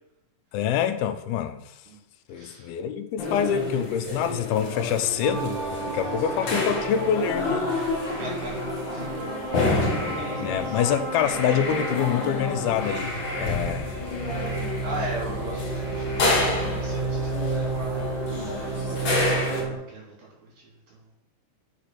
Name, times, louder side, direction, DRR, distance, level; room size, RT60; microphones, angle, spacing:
voice 1, 0.5-1.6 2.3-7.7 10.4-13.9, left 9 dB, 80° left, 2.5 m, -26 dB
voice 2, 2.3-2.7 8.0-8.5 8.9-9.9 10.3-10.8 14.8-16.2 16.8-18.1 18.7-21.1, right 1 dB, 60° right, 4.6 m, -39 dB
sound 1, 3.2-19.6, left 2 dB, 50° left, 1.5 m, -29 dB
sound 2, 5.2-19.7, right 3 dB, 40° right, 4.2 m, -32 dB
6.8 x 6.6 x 5.9 m
omnidirectional pair, 4.5 m